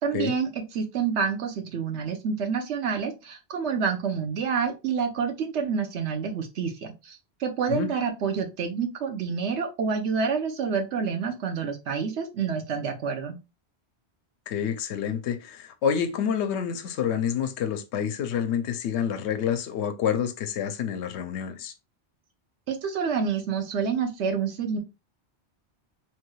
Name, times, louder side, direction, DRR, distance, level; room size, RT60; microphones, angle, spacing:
voice 1, 0.0-13.4 22.7-24.8, right 6 dB, 80° right, 1.0 m, -28 dB
voice 2, 14.5-21.7, left 8 dB, 80° left, 0.8 m, -28 dB
3.1 x 2.3 x 3.1 m
omnidirectional pair, 1.1 m